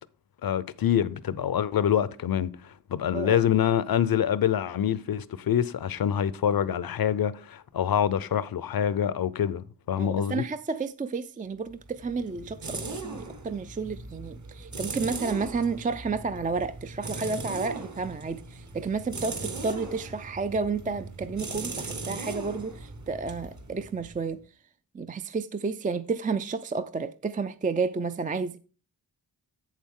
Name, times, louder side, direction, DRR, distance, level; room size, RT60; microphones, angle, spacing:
voice 1, 0.4-10.4, left 9 dB, 60° left, 0.6 m, -26 dB
voice 2, 10.0-24.4 24.9-28.6, right 4 dB, 20° right, 0.4 m, -31 dB
sound 1, 11.7-24.3, right 3 dB, 45° right, 1.2 m, -39 dB
7.8 x 7.3 x 3.7 m
cardioid pair, 70°, 40 cm